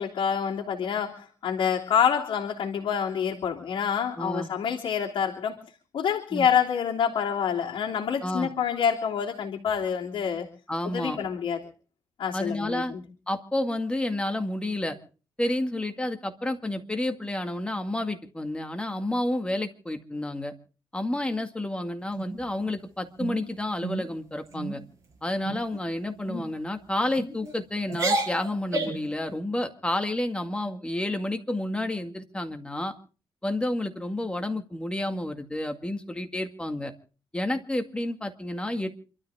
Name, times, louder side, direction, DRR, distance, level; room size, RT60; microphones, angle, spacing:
voice 1, 0.0-5.6 5.9-10.5 10.8-11.6 12.2-13.0, left 7 dB, 75° left, -4 dB, 3.2 m, -27 dB
voice 2, 4.2-4.5 6.3-6.5 8.2-8.5 10.7-11.2 12.3-13.0 13.3-15.0 15.4-20.5 20.9-24.8 25.2-32.9 33.4-36.9 37.3-38.9, left 1 dB, 10° left, 6 dB, 2.0 m, -30 dB
sound 1, 22.1-22.8 23.2-23.4 23.8-24.1 24.5-24.8 25.4-25.8 26.3-26.5 27.2-27.5 27.9-29.1, right 2 dB, 35° right, 6.4 m, -31 dB
28.0 x 13.5 x 3.6 m, 0.38 s
cardioid pair, 115°, 9 cm